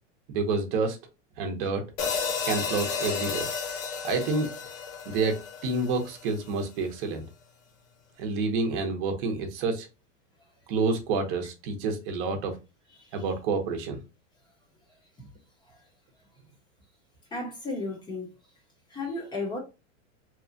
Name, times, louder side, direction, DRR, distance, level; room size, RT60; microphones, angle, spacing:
voice 1, 0.3-1.0 1.4-1.8 2.4-3.5 4.0-4.5 5.1-7.2 8.2-9.9 10.7-12.5 13.1-14.0, right 4 dB, 45° right, 0.9 m, -28 dB
sound 1, 2.0-6.3, left 6 dB, 85° left, 1.0 m, -32 dB
voice 2, 17.3-18.3 18.9-19.6, left 2 dB, 10° left, 0.9 m, -33 dB
2.9 x 2.3 x 2.6 m
supercardioid pair, 150°, 38 cm